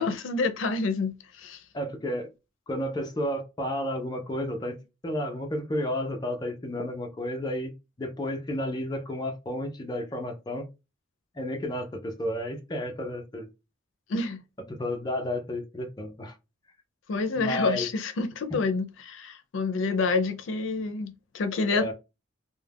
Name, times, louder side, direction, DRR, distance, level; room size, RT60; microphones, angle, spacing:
voice 1, 0.0-1.6 14.1-14.4 17.1-21.9, left 3 dB, 85° left, 0.5 m, -28 dB
voice 2, 1.7-2.3 2.7-7.7 8.0-10.7 11.4-13.5 14.7-16.3 17.4-17.9 18.5-18.6 21.7-21.9, left 1 dB, 20° left, 0.5 m, -32 dB
2.3 x 2.1 x 3.3 m
head